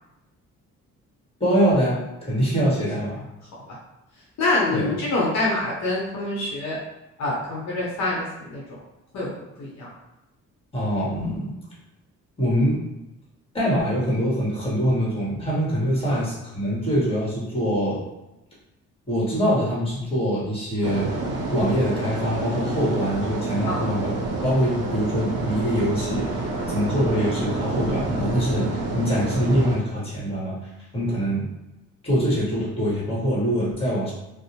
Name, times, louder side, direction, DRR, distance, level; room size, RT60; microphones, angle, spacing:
voice 1, 1.4-3.2 4.7-4.9 10.7-11.5 12.4-12.8 13.5-18.0 19.1-21.1 21.5-30.6 30.9-31.5 32.0-34.1, equal, 20° left, -7 dB, 1.3 m, -24 dB
voice 2, 4.4-6.8 7.2-8.6 9.1-9.3 9.6-9.9 16.1-16.2 23.7-23.8 26.6-26.7, left 2 dB, 65° left, -5 dB, 0.8 m, -25 dB
sound 1, 20.8-29.8, right 2 dB, 55° right, 0.6 m, -28 dB
2.6 x 2.0 x 2.8 m, 0.96 s
cardioid pair, 90°, 30 cm